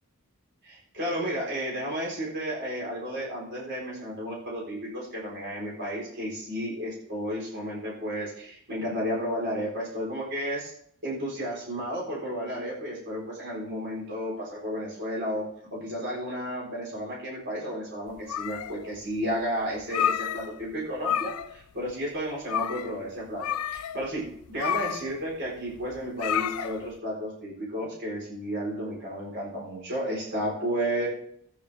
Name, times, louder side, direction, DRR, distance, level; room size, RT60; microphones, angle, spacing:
voice 1, 0.6-10.7 11.0-31.1, equal, 55° right, -4 dB, 4.1 m, -32 dB
sound 1, 18.1-19.0 19.3-19.4 19.8-20.7 21.0-21.6 21.9-22.0 22.4-23.0 23.4-27.0, left 9 dB, 85° left, 0.4 m, -30 dB
14.0 x 9.3 x 3.4 m, 0.69 s
head